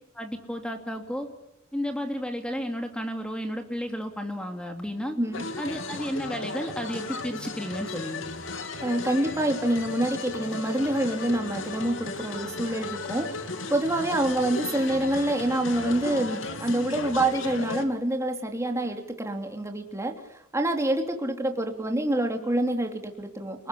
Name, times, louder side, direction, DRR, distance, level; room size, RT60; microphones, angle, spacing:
voice 1, 0.1-1.3 1.7-5.2 5.6-8.3, equal, 5° left, 5 dB, 2.7 m, -32 dB
sound 1, 5.3-17.8, left 3 dB, 70° left, 2.7 m, -35 dB
voice 2, 8.8-23.7, right 1 dB, 15° right, 4 dB, 3.0 m, -27 dB
29.5 x 20.0 x 10.0 m, 0.83 s
head